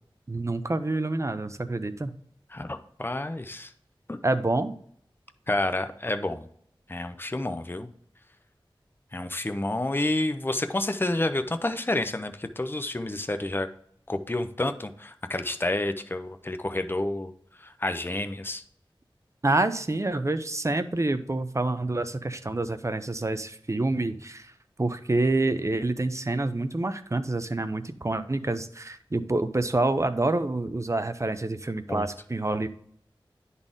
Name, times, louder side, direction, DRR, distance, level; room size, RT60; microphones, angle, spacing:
voice 1, 0.3-2.1 4.2-4.7 19.4-24.5 24.8-32.7, right 2 dB, 35° right, 11 dB, 0.6 m, -27 dB
voice 2, 2.5-3.7 4.1-4.2 5.5-6.5 6.9-7.9 9.1-13.7 14.1-17.3 17.6-18.6 31.9-32.1, left 2 dB, 25° left, 9 dB, 0.6 m, -29 dB
10.5 x 4.1 x 3.7 m, 0.64 s
wide cardioid pair, 60°, 9 cm